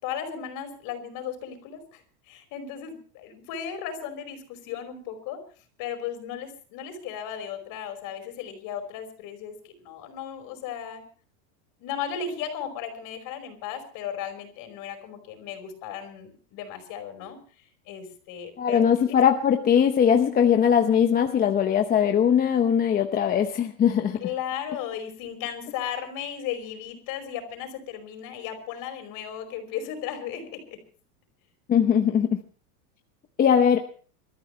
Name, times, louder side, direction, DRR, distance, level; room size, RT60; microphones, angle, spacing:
voice 1, 0.0-5.4 5.8-11.0 11.8-17.4 17.9-19.2 24.2-30.8, left 8 dB, 45° left, 6 dB, 5.2 m, -35 dB
voice 2, 18.6-24.2 31.7-32.3 33.4-33.8, left 8 dB, 20° left, 5 dB, 0.8 m, -20 dB
26.0 x 13.5 x 3.2 m, 0.41 s
supercardioid pair, 145°, 46 cm